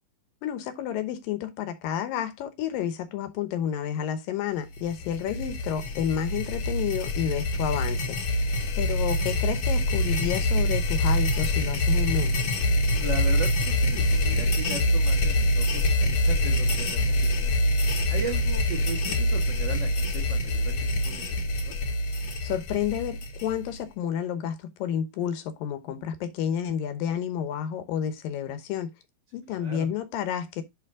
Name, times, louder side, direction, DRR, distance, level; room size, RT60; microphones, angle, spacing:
voice 1, 0.4-8.2 8.8-12.3 22.4-28.9 29.3-30.6, left 9 dB, 85° left, 2.8 m, -30 dB
sound 1, 4.7-23.8, left 1 dB, 55° left, 1.8 m, -25 dB
voice 2, 8.5-8.8 12.9-17.5 18.1-20.7 21.0-21.8 29.5-29.9, right 5 dB, 85° right, 0.9 m, -38 dB
9.4 x 4.4 x 3.6 m
omnidirectional pair, 3.9 m